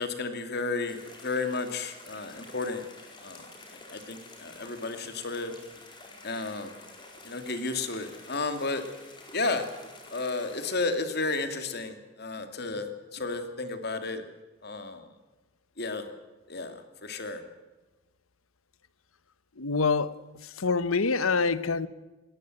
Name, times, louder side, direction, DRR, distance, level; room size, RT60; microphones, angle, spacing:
voice 1, 0.0-2.8 3.2-3.4 3.9-5.5 6.2-6.8 7.2-8.8 9.3-9.7 10.1-14.2 14.6-15.1 15.8-16.1 16.5-16.7 17.0-17.4, left 3 dB, 50° left, 8 dB, 2.6 m, -32 dB
sound 1, 0.9-10.9, left 2 dB, 20° left, 4.6 m, -49 dB
voice 2, 19.6-20.1 20.4-21.9, left 4 dB, 85° left, 16 dB, 1.1 m, -26 dB
21.0 x 18.5 x 7.9 m, 1.1 s
head